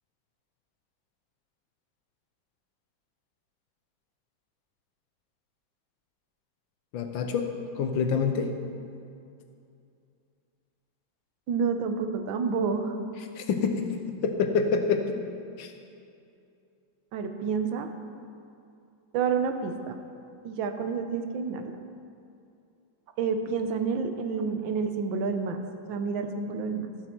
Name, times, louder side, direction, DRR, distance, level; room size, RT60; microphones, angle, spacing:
voice 1, 6.9-8.5 13.4-13.9 14.2-15.2 15.6-15.7, left 5 dB, 75° left, 5 dB, 1.6 m, -27 dB
voice 2, 11.5-12.9 17.1-17.9 19.1-20.0 20.4-21.7 23.2-25.6 25.9-26.9, right 5 dB, 75° right, 7 dB, 1.5 m, -29 dB
14.5 x 7.5 x 4.5 m, 2.6 s
omnidirectional pair, 2.2 m